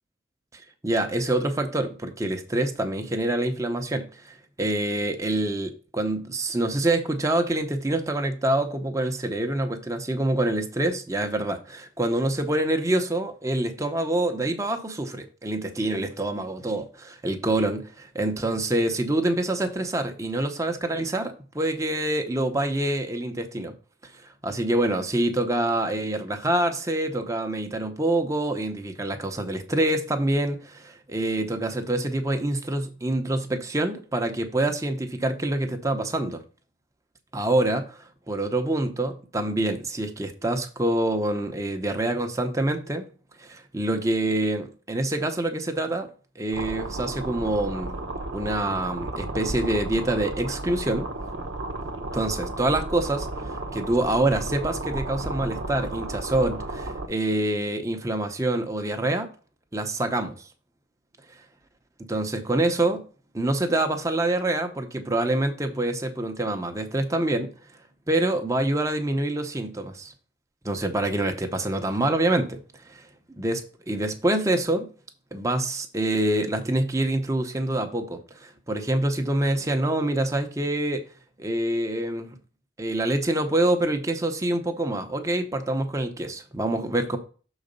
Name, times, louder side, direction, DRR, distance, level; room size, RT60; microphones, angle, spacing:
voice 1, 0.5-23.7 24.1-36.4 37.3-43.1 43.4-46.1 46.4-47.9 48.3-51.1 52.1-59.3 59.7-60.5 62.1-63.0 63.3-67.5 68.1-70.1 70.6-72.6 72.9-73.1 73.4-73.6 73.9-74.9 75.3-81.0 81.4-82.4 82.8-87.2, right 1 dB, 15° right, 0.7 m, -26 dB
sound 1, 46.5-57.1, right 2 dB, 90° right, 0.9 m, -33 dB
6.4 x 4.0 x 5.2 m
head